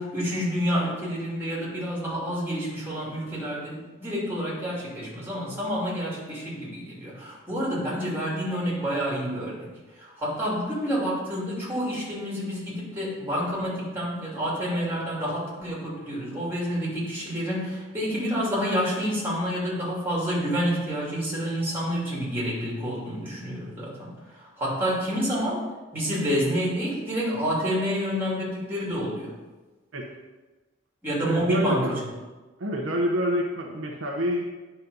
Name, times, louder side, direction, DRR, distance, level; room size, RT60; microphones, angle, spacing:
voice 1, 0.0-9.7 10.0-25.6 25.9-29.3 31.0-32.0, equal, 10° right, -6 dB, 2.7 m, -28 dB
voice 2, 31.3-32.0 32.6-34.4, equal, 70° right, 0 dB, 1.0 m, -27 dB
9.3 x 4.3 x 5.4 m, 1.2 s
head